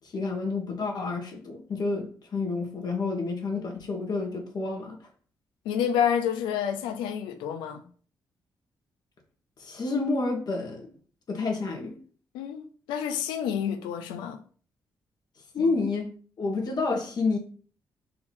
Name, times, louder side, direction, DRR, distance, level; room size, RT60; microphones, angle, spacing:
voice 1, 0.1-5.0 9.6-10.9 11.3-12.0 15.5-16.1 16.4-17.4, left 3 dB, 60° left, 1.4 m, -29 dB
voice 2, 5.6-7.8 12.3-14.4 15.6-15.7, left 8 dB, 90° left, 0.5 m, -29 dB
4.1 x 2.9 x 4.1 m
supercardioid pair, 50°, 8 cm